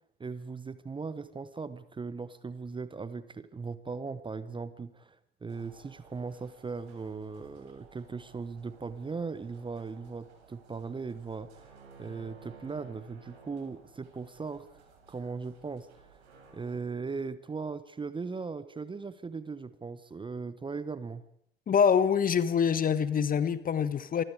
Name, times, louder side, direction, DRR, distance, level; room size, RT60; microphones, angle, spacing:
voice 1, 0.2-14.7 15.1-16.2 16.5-21.2, right 4 dB, 15° right, 15 dB, 1.2 m, -38 dB
sound 1, 5.5-16.8, right 5 dB, 75° right, 6.9 m, -56 dB
voice 2, 21.7-24.2, left 7 dB, 25° left, 15 dB, 1.4 m, -25 dB
27.5 x 23.5 x 4.9 m, 0.70 s
figure-of-eight pair, 75°, 33 cm